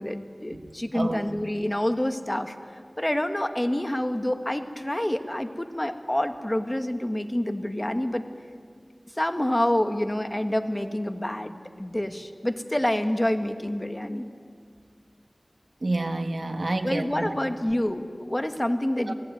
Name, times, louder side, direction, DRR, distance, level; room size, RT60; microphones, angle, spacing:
voice 1, 0.0-2.5 3.0-8.2 9.1-14.3 16.8-19.1, left 1 dB, 25° left, 7 dB, 1.7 m, -27 dB
voice 2, 0.9-1.3 15.8-17.4 19.0-19.1, right 2 dB, 65° right, 6 dB, 1.7 m, -29 dB
27.5 x 18.0 x 9.5 m, 2.1 s
wide cardioid pair, 50°, 0 cm